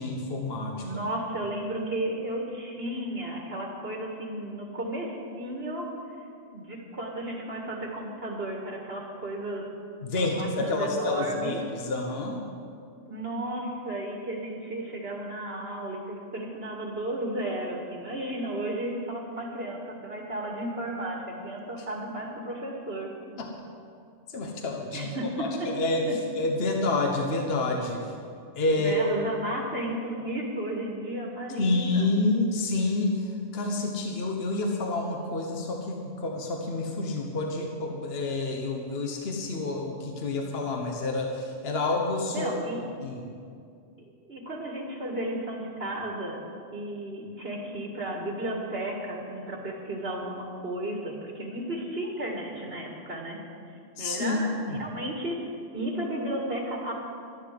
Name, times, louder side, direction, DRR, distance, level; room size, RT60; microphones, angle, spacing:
voice 1, 0.0-0.8 10.0-12.4 23.4-23.5 24.3-25.0 25.4-26.0 26.4-28.0 28.5-29.0 31.5-33.2 33.5-42.5 43.0-43.2 54.0-54.8, left 2 dB, 55° left, 1 dB, 1.4 m, -28 dB
voice 2, 0.8-5.9 6.5-9.7 10.2-11.6 13.0-23.1 24.9-25.7 26.1-26.2 28.7-32.1 42.3-42.8 44.0-46.4 46.7-53.4 54.0-55.5 55.7-56.9, right 1 dB, 50° right, -1 dB, 2.1 m, -34 dB
13.0 x 11.0 x 7.8 m, 2.4 s
omnidirectional pair, 1.3 m